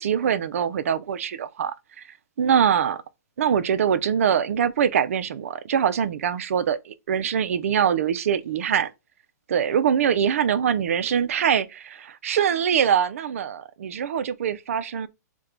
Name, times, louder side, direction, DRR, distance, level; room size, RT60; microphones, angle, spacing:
voice 1, 0.0-2.0 2.4-3.0 3.4-8.9 9.5-15.1, right 8 dB, 50° right, 0.4 m, -23 dB
4.6 x 2.2 x 3.7 m
hypercardioid pair, 175°, 9 cm